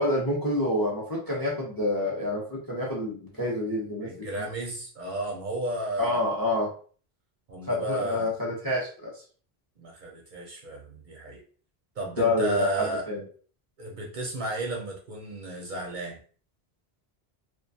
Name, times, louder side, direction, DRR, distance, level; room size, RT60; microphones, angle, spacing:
voice 1, 0.0-4.5 6.0-6.7 7.7-9.1 12.2-13.3, left 1 dB, 25° left, -3 dB, 0.5 m, -28 dB
voice 2, 4.0-6.2 7.5-8.3 9.8-11.4 12.0-13.1 13.8-16.2, right 2 dB, 55° right, 0 dB, 0.6 m, -33 dB
2.3 x 2.2 x 2.6 m, 0.43 s
omnidirectional pair, 1.1 m